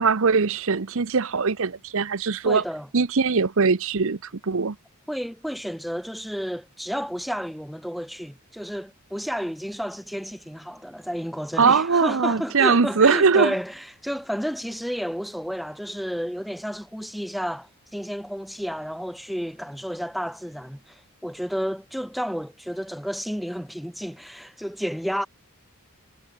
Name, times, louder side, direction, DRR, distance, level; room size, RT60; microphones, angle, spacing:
voice 1, 0.0-2.6 2.9-4.7 11.6-13.5, right 5 dB, 65° right, 0.8 m, -21 dB
voice 2, 2.5-2.9 5.1-25.3, equal, ahead, 1.8 m, -31 dB
head